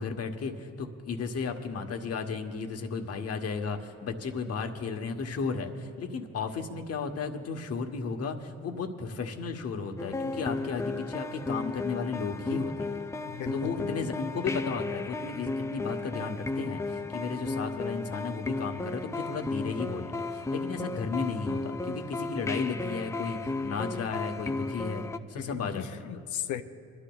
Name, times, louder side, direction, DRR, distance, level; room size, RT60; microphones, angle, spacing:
voice 1, 0.0-13.0 13.5-25.9, left 5 dB, 55° left, 5 dB, 1.1 m, -34 dB
sound 1, 10.0-25.2, left 3 dB, 10° left, 0.3 m, -34 dB
voice 2, 13.3-13.9 25.4-26.6, left 10 dB, 75° left, 9 dB, 0.7 m, -36 dB
26.0 x 12.0 x 2.3 m, 2.4 s
cardioid pair, 90°, 30 cm